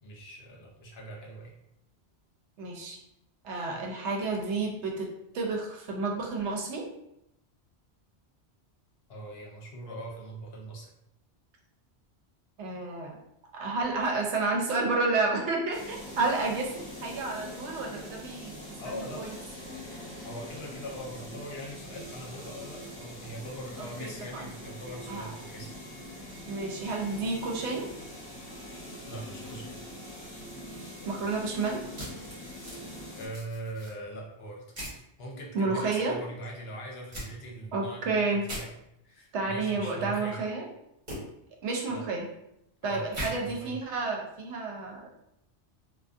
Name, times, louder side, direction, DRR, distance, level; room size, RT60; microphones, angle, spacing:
voice 1, 0.0-1.5 9.1-10.9 18.8-19.2 20.2-25.7 29.1-29.8 33.2-34.6 35.2-38.7 39.0-40.4 41.9-42.0 42.8-43.8, right 1 dB, 65° left, -1 dB, 0.8 m, -41 dB
voice 2, 2.6-3.0 3.4-5.1 5.3-6.8 12.6-13.2 13.5-18.6 18.9-19.4 23.8-24.4 25.1-25.3 26.5-27.9 31.1-31.8 35.5-36.2 37.7-38.4 39.3-40.7 41.6-42.3 42.8-45.1, right 3 dB, 80° right, 0 dB, 0.9 m, -30 dB
sound 1, 15.7-33.3, left 1 dB, 25° left, 0.9 m, -43 dB
sound 2, 31.9-32.8 33.3-33.9 34.7-35.0 37.1-37.3 38.4-38.6 41.1-41.2 43.1-43.3, right 1 dB, 45° right, 1.1 m, -38 dB
2.5 x 2.3 x 2.3 m, 0.82 s
omnidirectional pair, 1.1 m